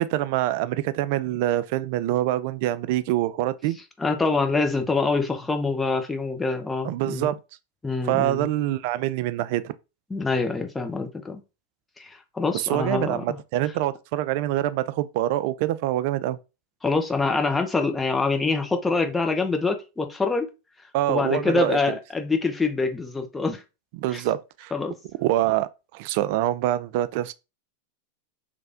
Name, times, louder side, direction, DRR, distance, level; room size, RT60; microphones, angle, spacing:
voice 1, 0.0-3.8 6.8-7.4 8.0-9.7 12.5-16.4 20.9-22.0 23.9-24.7 25.2-27.3, right 14 dB, 55° right, 0.3 m, -25 dB
voice 2, 4.0-7.3 7.8-8.5 10.1-11.4 12.0-13.4 16.8-20.5 21.1-23.6 24.1-24.2 24.7-25.0, left 3 dB, 10° left, 0.7 m, -25 dB
3.3 x 2.5 x 3.4 m
hypercardioid pair, 95°, 0 cm